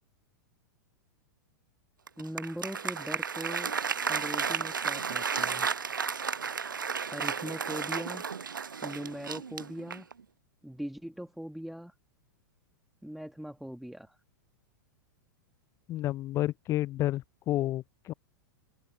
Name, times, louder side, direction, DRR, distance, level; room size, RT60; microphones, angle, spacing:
Applause, 2.1-10.2, right 6 dB, 80° right, 0.9 m, -33 dB
voice 1, 2.2-3.7 4.1-5.7 7.1-8.3 8.8-10.1 10.6-11.9 13.0-14.2, equal, ahead, 2.2 m, -40 dB
voice 2, 15.9-18.1, left 15 dB, 30° left, 0.5 m, -30 dB
open air
figure-of-eight pair, 100°, 11 cm